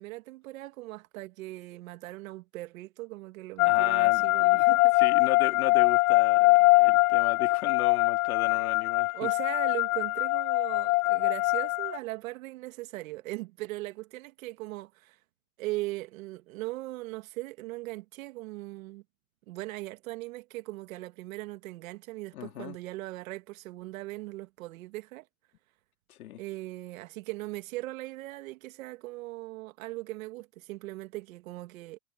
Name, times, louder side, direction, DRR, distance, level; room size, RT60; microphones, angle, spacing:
voice 1, 0.0-4.9 8.4-8.7 9.1-15.2 15.6-19.0 19.5-25.3 26.4-32.0, right 19 dB, 70° right, 2.1 m, -39 dB
voice 2, 3.6-4.7 5.0-9.1 22.3-22.8 26.1-26.4, left 13 dB, 90° left, 3.7 m, -36 dB
sound 1, 3.6-12.0, left 23 dB, 70° left, 0.7 m, -23 dB
supercardioid pair, 135°, 42 cm